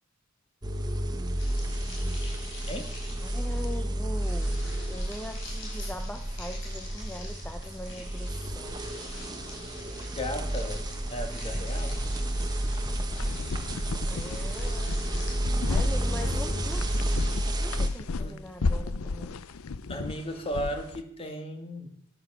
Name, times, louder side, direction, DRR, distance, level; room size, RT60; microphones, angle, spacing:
sound 1, 0.6-17.9, right 1 dB, 20° right, 1.2 m, -31 dB
sound 2, 1.4-17.5, left 3 dB, 60° left, 5.0 m, -48 dB
voice 1, 3.2-4.6 4.9-8.8 14.1-15.1 15.7-16.9 17.2-19.4, left 1 dB, 5° left, 5 dB, 0.7 m, -41 dB
voice 2, 10.1-12.0 18.2-18.4 19.9-21.9, equal, 25° left, 5 dB, 1.7 m, -35 dB
sound 3, 13.1-21.0, left 3 dB, 80° left, 0.6 m, -34 dB
13.5 x 9.9 x 6.1 m, 0.73 s
head